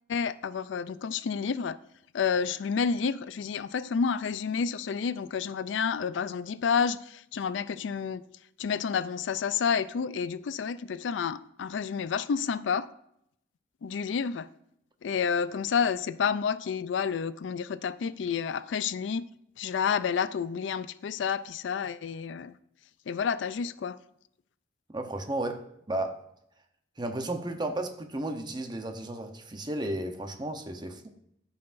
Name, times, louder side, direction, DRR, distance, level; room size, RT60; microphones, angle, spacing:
voice 1, 0.1-1.8 2.1-8.2 8.6-12.9 13.8-14.5 15.0-19.3 19.6-22.5 23.1-24.0, left 6 dB, 85° left, 0.4 m, -30 dB
voice 2, 24.9-26.2 27.0-31.1, right 1 dB, 25° right, 0.8 m, -34 dB
14.0 x 5.7 x 2.6 m
head